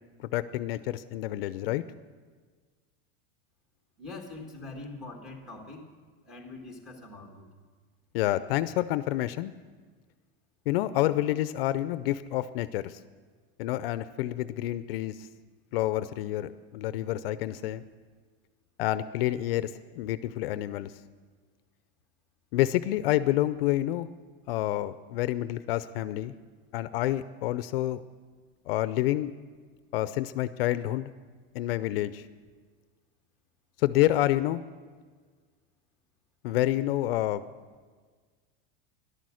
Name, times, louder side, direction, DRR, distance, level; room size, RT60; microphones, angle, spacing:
voice 1, 0.2-1.8 8.1-9.5 10.7-13.0 13.6-15.2 15.7-17.8 18.8-20.9 22.5-24.1 24.5-26.3 26.7-28.0 28.7-29.3 29.9-31.1 31.5-32.2 33.8-34.6 36.4-37.4, left 14 dB, 70° left, 14 dB, 0.6 m, -28 dB
voice 2, 4.0-5.9 6.3-7.5, left 2 dB, ahead, 1 dB, 1.5 m, -43 dB
13.5 x 11.5 x 6.3 m, 1.5 s
supercardioid pair, 175°, 30 cm